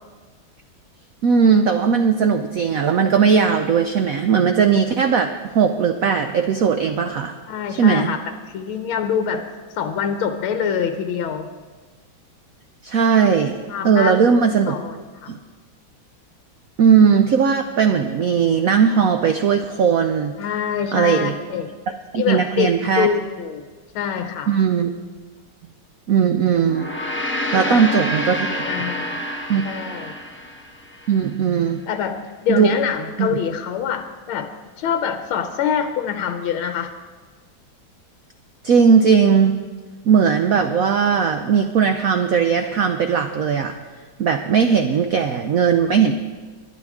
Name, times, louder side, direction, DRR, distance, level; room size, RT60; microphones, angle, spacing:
voice 1, 1.2-7.3 7.7-8.1 12.8-13.5 13.8-14.7 15.3-15.4 16.8-20.3 20.9-21.3 22.1-23.1 24.5-24.9 26.1-26.9 27.5-28.6 29.5-29.6 31.1-31.8 32.5-32.8 33.2-33.4 38.6-39.6 40.0-43.7 44.2-46.1, right 6 dB, 90° right, 7 dB, 0.7 m, -18 dB
voice 2, 7.5-8.2 8.5-11.5 13.7-14.2 14.7-15.3 20.4-21.7 22.1-23.6 23.9-24.6 27.5-27.8 28.6-29.2 29.6-30.1 31.9-34.5 34.8-36.9, left 7 dB, 85° left, 7 dB, 1.6 m, -25 dB
Gong, 26.6-31.2, equal, 10° left, 0.6 m, -28 dB
20.0 x 10.5 x 3.6 m, 1.4 s
omnidirectional pair, 2.2 m